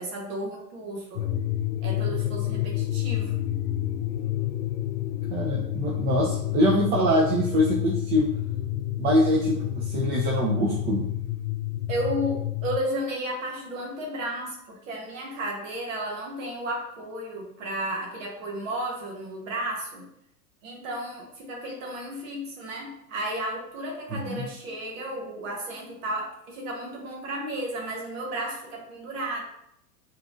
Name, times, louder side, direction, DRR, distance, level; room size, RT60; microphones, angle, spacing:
voice 1, 0.0-1.3 1.8-3.3 11.9-20.1 20.6-29.4, right 1 dB, 55° right, -1 dB, 1.2 m, -33 dB
sound 1, 1.2-12.8, left 13 dB, 70° left, 0.6 m, -29 dB
voice 2, 5.3-8.3 9.0-11.0 24.3-24.4, equal, 20° right, -3 dB, 0.6 m, -24 dB
4.8 x 3.1 x 2.5 m, 0.76 s
hypercardioid pair, 105°, 46 cm